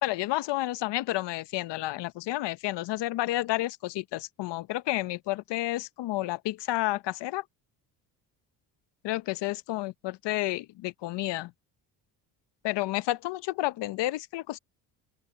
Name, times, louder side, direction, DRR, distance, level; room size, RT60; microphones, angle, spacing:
voice 1, 0.0-7.4 9.0-11.5 12.6-14.6, left 17 dB, 75° left, 0.8 m, -30 dB
open air
supercardioid pair, 75°, 43 cm